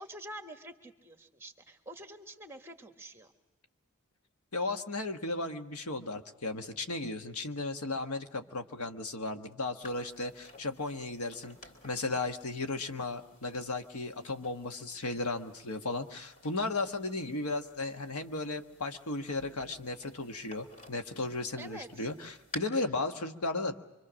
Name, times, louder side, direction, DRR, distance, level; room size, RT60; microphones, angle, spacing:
voice 1, 0.0-3.3 21.6-22.1, right 1 dB, 10° right, 5 dB, 1.4 m, -47 dB
voice 2, 4.5-11.6 11.8-23.8, left 2 dB, 80° left, 6 dB, 1.4 m, -35 dB
sound 1, 9.8-22.6, left 2 dB, 35° left, 3.5 m, -54 dB
25.5 x 25.0 x 6.3 m, 1.1 s
head